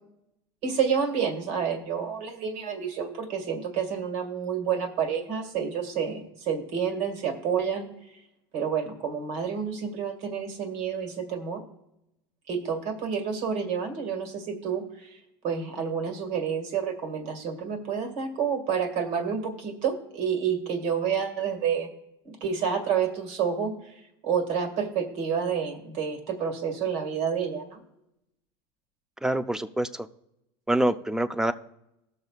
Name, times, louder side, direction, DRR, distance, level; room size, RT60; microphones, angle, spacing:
voice 1, 0.6-7.9 8.5-11.6 12.5-21.9 22.2-27.8, right 7 dB, 65° right, 5 dB, 2.1 m, -29 dB
voice 2, 29.2-30.1 30.7-31.5, right 1 dB, 5° right, 11 dB, 0.5 m, -25 dB
19.0 x 6.7 x 2.4 m, 0.85 s
supercardioid pair, 105°, 13 cm